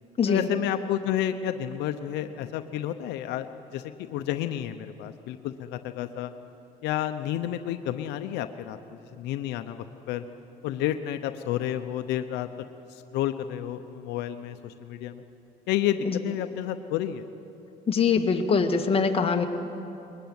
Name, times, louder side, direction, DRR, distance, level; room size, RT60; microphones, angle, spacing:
voice 1, 0.3-3.5 3.7-6.3 6.8-10.2 10.6-12.5 12.9-15.2 15.7-17.3, left 11 dB, 90° left, 9 dB, 0.8 m, -30 dB
voice 2, 17.9-19.5, left 5 dB, 35° left, 3 dB, 1.9 m, -23 dB
21.5 x 21.0 x 9.5 m, 2.8 s
cardioid pair, 110°, 17 cm